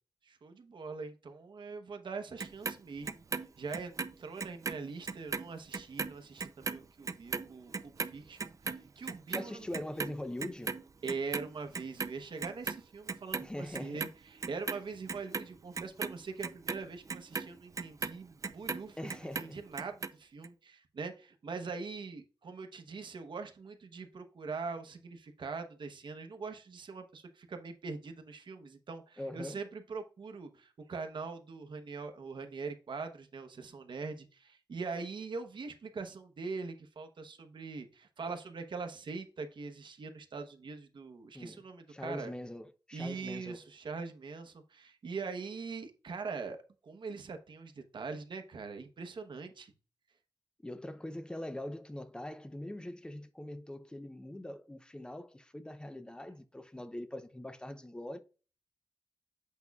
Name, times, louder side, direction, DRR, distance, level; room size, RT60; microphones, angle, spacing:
voice 1, 0.2-9.7 11.0-42.3 42.9-46.6 46.8-49.7, right 4 dB, 65° right, 0.9 m, -42 dB
Clock, 2.4-4.8 5.1-11.5 11.7-12.8 13.1-14.1 14.4-18.8 19.1-20.1 20.4-20.5, right 4 dB, 40° right, 0.4 m, -37 dB
voice 2, 9.3-10.7 13.4-14.1 19.0-19.6 29.2-29.6 41.3-41.6 41.9-43.6 50.6-58.2, left 1 dB, 10° left, 0.6 m, -42 dB
8.3 x 5.3 x 2.3 m
wide cardioid pair, 130°, 9 cm